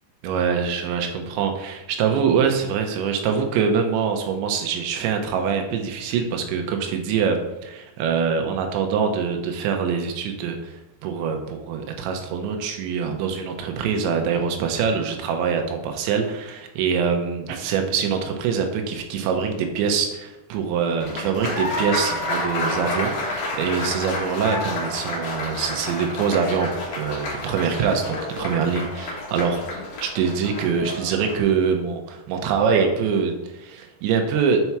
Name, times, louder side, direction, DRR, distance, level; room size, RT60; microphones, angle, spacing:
voice 1, 0.2-26.7 27.0-29.6 30.0-34.6, right 6 dB, 90° right, 4 dB, 3.2 m, -24 dB
Applause, 21.0-31.4, left 2 dB, 50° left, 2.2 m, -29 dB
6.9 x 5.6 x 4.6 m, 0.98 s
omnidirectional pair, 5.0 m